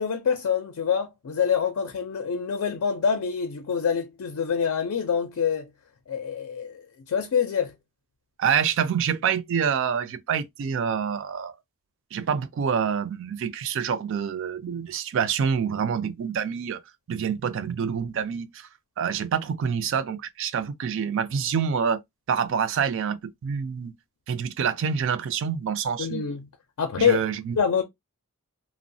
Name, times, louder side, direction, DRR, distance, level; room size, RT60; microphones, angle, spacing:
voice 1, 0.0-5.7 6.1-7.7 26.0-26.5 26.8-27.2 27.6-27.8, left 7 dB, 75° left, 0.4 m, -26 dB
voice 2, 8.4-11.5 12.1-16.8 17.1-18.7 19.0-22.0 22.3-23.9 24.3-26.2 27.0-27.6, right 7 dB, 60° right, 0.3 m, -27 dB
2.9 x 2.0 x 2.6 m
head